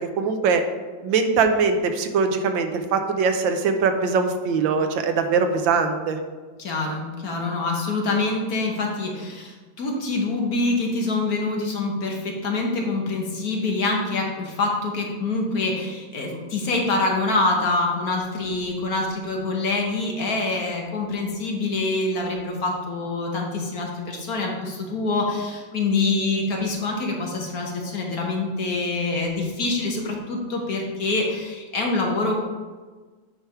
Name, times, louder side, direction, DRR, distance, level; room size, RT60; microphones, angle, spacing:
voice 1, 0.2-0.6 1.0-6.2, right 5 dB, 85° right, 6 dB, 1.5 m, -22 dB
voice 2, 6.6-32.3, left 3 dB, 55° left, 0 dB, 1.5 m, -25 dB
9.2 x 3.4 x 5.6 m, 1.4 s
omnidirectional pair, 2.1 m